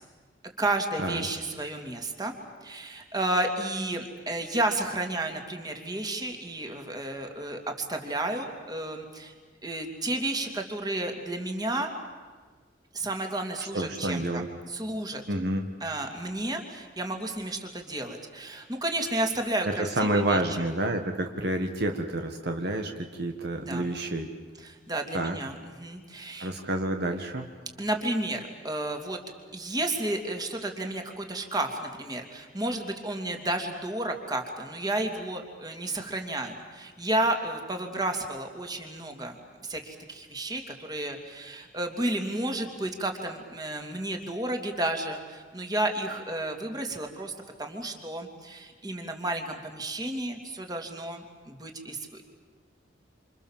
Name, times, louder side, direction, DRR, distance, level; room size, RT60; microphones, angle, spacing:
voice 1, 0.6-2.3 2.6-9.3 9.6-11.9 12.9-15.2 15.8-20.4 23.6-23.9 24.6-26.5 27.8-29.2 29.5-47.3 47.6-52.2, right 1 dB, 20° right, 4 dB, 2.8 m, -32 dB
voice 2, 13.7-14.5 15.3-15.7 19.6-24.3 25.1-25.4 26.4-27.5, right 1 dB, 55° right, 4 dB, 1.6 m, -29 dB
27.5 x 27.5 x 7.5 m, 1.5 s
head